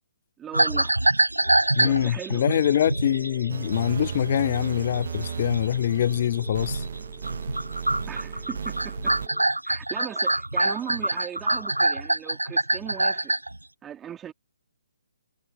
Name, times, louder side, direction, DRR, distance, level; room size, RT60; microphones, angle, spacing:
voice 1, 0.4-1.0 1.8-2.6 8.1-9.2 9.6-13.3 13.8-14.3, right 9 dB, 15° right, 3.4 m, -38 dB
sound 1, 0.5-7.0 7.2-13.6, right 1 dB, 85° right, 1.1 m, -26 dB
sound 2, 1.4-9.4, left 10 dB, 15° left, 5.0 m, -52 dB
voice 2, 1.8-6.8, left 11 dB, 40° left, 0.3 m, -24 dB
sound 3, 3.5-9.3, right 7 dB, 50° right, 0.7 m, -35 dB
figure-of-eight pair, 135°, 0 cm